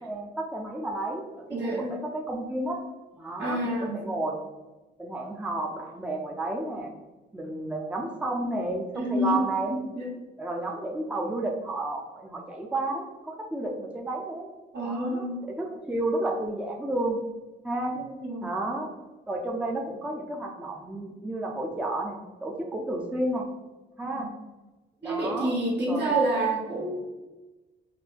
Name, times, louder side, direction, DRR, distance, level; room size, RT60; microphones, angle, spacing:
voice 1, 0.0-2.8 3.2-4.5 5.0-6.9 7.3-9.7 10.4-14.5 14.8-17.2 17.6-17.9 18.4-18.9 19.3-23.5 24.0-24.3 25.0-25.5 25.9-26.2, right 2 dB, 5° right, 0 dB, 0.6 m, -31 dB
voice 2, 1.5-2.0 3.4-4.0 8.9-10.1 14.7-15.4 17.9-18.5 24.0-24.3 25.0-27.1, right 1 dB, 60° right, -3 dB, 1.5 m, -29 dB
5.0 x 2.2 x 3.3 m, 1.1 s
cardioid pair, 90°, 20 cm